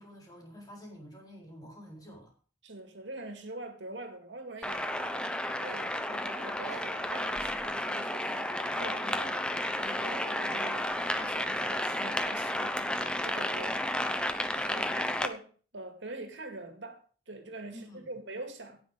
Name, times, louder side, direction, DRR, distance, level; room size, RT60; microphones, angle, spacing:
voice 1, 0.0-2.3 6.6-6.9 13.6-14.3 14.5-15.1 17.7-18.1, equal, 20° left, 4.4 m, -49 dB
voice 2, 2.6-5.3 5.6-9.5 9.8-12.9 13.2-14.2 14.7-18.8, right 2 dB, 85° right, 2.1 m, -44 dB
sound 1, 4.6-15.3, left 1 dB, 5° left, 0.8 m, -32 dB
17.5 x 6.1 x 5.0 m
head